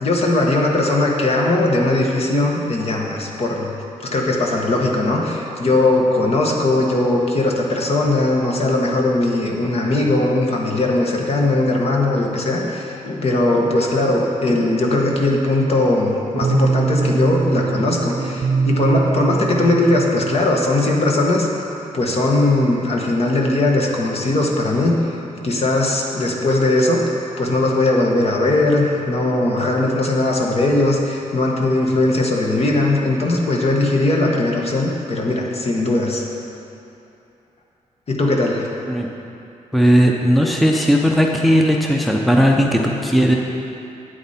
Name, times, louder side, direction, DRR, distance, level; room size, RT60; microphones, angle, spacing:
voice 1, 0.0-3.7 4.0-21.5 21.9-25.0 25.4-36.2 38.1-38.7, left 2 dB, 50° left, -1 dB, 1.3 m, -19 dB
sound 1, 16.4-20.5, right 4 dB, 50° right, 0.4 m, -22 dB
voice 2, 39.7-43.4, equal, ahead, 0 dB, 0.6 m, -16 dB
9.1 x 8.0 x 4.3 m, 2.7 s
cardioid pair, 90°, 13 cm